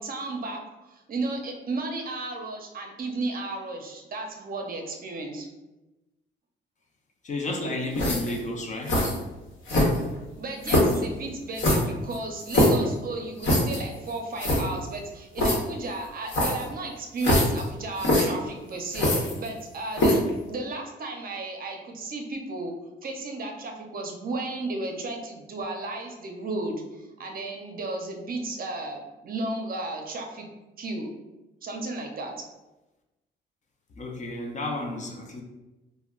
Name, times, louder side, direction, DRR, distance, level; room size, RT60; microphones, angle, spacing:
voice 1, 0.0-5.5 10.4-20.2 20.5-22.7 23.0-30.5 30.8-31.1 31.6-32.4, right 2 dB, 45° right, 2 dB, 0.5 m, -34 dB
voice 2, 7.2-9.0 34.0-35.4, left 2 dB, 40° left, 2 dB, 0.5 m, -32 dB
sound 1, 7.9-8.4 8.9-9.2 9.7-10.2 10.6-11.0 11.6-12.8 13.4-13.8 14.1-14.2 14.4-14.6 15.4-15.6 16.3-16.7 17.2-17.6 18.0-18.2 18.9-19.6 19.9-20.3, left 1 dB, 75° left, 1.0 m, -22 dB
2.2 x 2.1 x 3.6 m, 1.0 s
cardioid pair, 90°, 20 cm